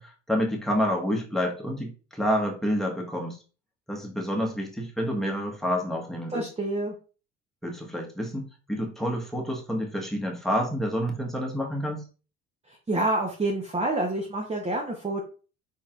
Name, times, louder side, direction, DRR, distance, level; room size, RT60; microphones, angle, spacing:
voice 1, 0.0-3.4 3.9-6.4 7.6-12.1, equal, ahead, 0 dB, 1.3 m, -28 dB
voice 2, 6.3-6.9 12.7-15.2, right 2 dB, 20° right, 0 dB, 0.8 m, -28 dB
4.0 x 3.7 x 2.4 m, 0.36 s
hypercardioid pair, 60°, 36 cm